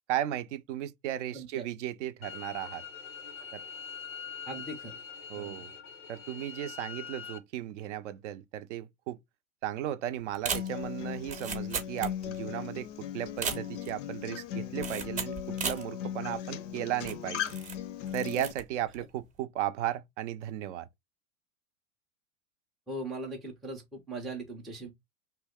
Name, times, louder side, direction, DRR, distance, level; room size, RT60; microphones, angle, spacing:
voice 1, 0.1-2.8 3.5-3.6 5.3-5.7 6.1-9.2 9.6-17.6 18.1-20.9, right 12 dB, 60° right, 0.5 m, -35 dB
voice 2, 1.3-1.7 4.5-4.9 5.4-5.6 22.9-24.9, right 2 dB, ahead, 0.3 m, -39 dB
sound 1, 2.2-7.4, left 6 dB, 90° left, 0.8 m, -43 dB
sound 2, 10.3-12.5 12.8-12.9 13.3-14.0 14.8-15.9 16.4-16.5 17.0-17.8 18.1-18.6 18.9-19.2, right 5 dB, 20° right, 0.7 m, -36 dB
Acoustic guitar, 10.5-18.5, left 10 dB, 60° left, 0.5 m, -38 dB
2.7 x 2.2 x 3.4 m
hypercardioid pair, 105°, 41 cm